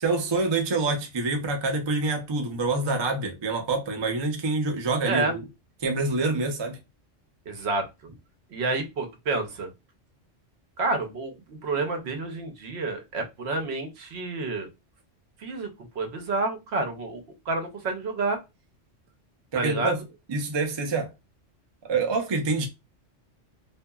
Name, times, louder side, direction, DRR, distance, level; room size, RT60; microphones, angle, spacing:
voice 1, 0.0-5.5 5.8-6.8 19.5-20.0 20.3-21.1 21.8-22.7, right 3 dB, 45° right, 0.3 m, -26 dB
voice 2, 7.5-7.9 8.5-9.7 10.8-14.7 15.4-15.7 16.0-18.4 19.5-19.9, right 3 dB, 65° right, 0.9 m, -29 dB
2.8 x 2.6 x 2.2 m
omnidirectional pair, 1.3 m